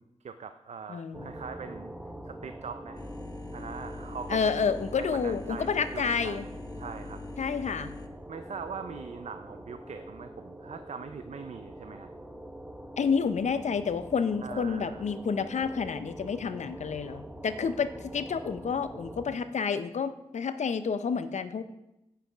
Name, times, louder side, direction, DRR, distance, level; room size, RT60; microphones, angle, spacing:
voice 1, 0.0-1.9 2.2-3.0 3.5-4.6 4.9-7.2 8.3-12.1 14.4-15.1, right 6 dB, 70° right, 9 dB, 0.5 m, -42 dB
voice 2, 0.9-1.3 4.3-6.5 7.4-7.9 13.0-21.6, left 6 dB, 75° left, 11 dB, 0.6 m, -29 dB
sound 1, 1.1-19.3, right 1 dB, 10° right, 0.9 m, -44 dB
sound 2, 2.9-8.1, left 3 dB, 30° left, 1.0 m, -43 dB
8.1 x 5.7 x 5.0 m, 0.89 s
cardioid pair, 50°, 12 cm